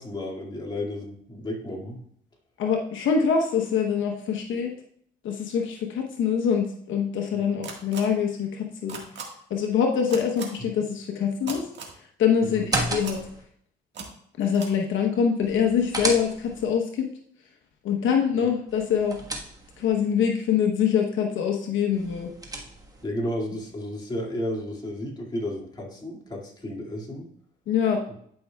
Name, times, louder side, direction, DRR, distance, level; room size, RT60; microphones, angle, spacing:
voice 1, 0.0-2.0 12.4-12.7 23.0-27.3, left 1 dB, 20° left, -2 dB, 2.2 m, -32 dB
voice 2, 2.6-4.7 5.2-9.2 9.5-11.7 11.9-13.2 14.4-17.1 17.8-19.2 19.8-22.3 27.7-28.0, left 7 dB, 75° left, 2 dB, 1.0 m, -24 dB
sound 1, 7.6-8.0 8.9-9.2 10.1-10.4 11.5-11.9 12.7-13.2 13.9-14.1 14.5-14.7, right 5 dB, 65° right, 1.7 m, -36 dB
sound 2, 12.5-13.4 15.4-16.7 18.7-19.9 21.9-23.0, right 1 dB, 20° right, 1.4 m, -33 dB
11.5 x 5.5 x 2.3 m, 0.66 s
cardioid pair, 90°, 20 cm